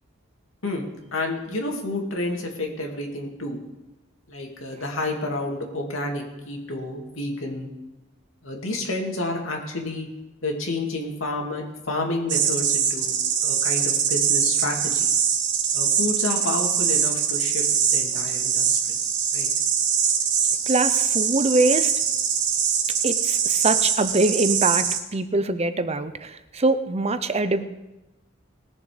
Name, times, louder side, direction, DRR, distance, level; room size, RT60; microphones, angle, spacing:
voice 1, 0.6-3.6 4.3-7.7 8.4-10.1 10.4-13.2 13.4-15.1 15.7-17.6 17.9-19.0 19.3-19.5, left 2 dB, 75° left, 1 dB, 2.5 m, -30 dB
sound 1, 12.3-25.0, right 7 dB, 60° right, 1.4 m, -23 dB
voice 2, 20.7-21.9 23.0-27.6, right 2 dB, 30° right, 11 dB, 0.7 m, -23 dB
19.5 x 7.2 x 5.1 m, 1.0 s
head